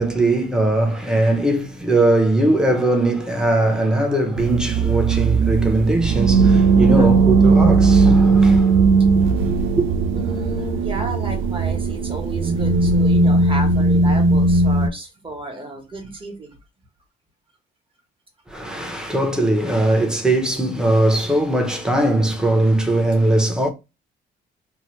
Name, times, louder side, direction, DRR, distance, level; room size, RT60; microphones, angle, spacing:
voice 1, 0.0-8.8 9.5-9.9 18.5-23.7, right 1 dB, 5° right, 0.7 m, -20 dB
sound 1, 4.4-14.9, right 3 dB, 80° right, 0.4 m, -17 dB
voice 2, 6.8-7.2 10.1-16.6, right 2 dB, 25° right, 1.1 m, -32 dB
2.8 x 2.2 x 3.0 m
cardioid pair, 90°, 20 cm